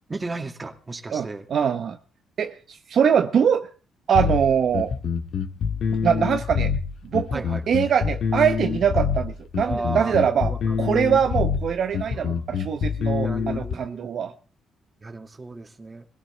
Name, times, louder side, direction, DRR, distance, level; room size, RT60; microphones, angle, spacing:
voice 1, 0.1-1.5 7.3-7.6 9.6-11.1 12.1-12.3 13.2-14.3 15.0-16.1, right 3 dB, 25° right, 2.2 m, -34 dB
voice 2, 1.1-2.0 2.4-3.7 4.1-4.9 6.0-6.7 7.1-10.5 10.8-14.3, right 7 dB, 60° right, 0.9 m, -23 dB
sound 1, 4.1-13.7, left 6 dB, 65° left, 1.7 m, -25 dB
22.0 x 16.0 x 3.4 m
cardioid pair, 90°, 0 cm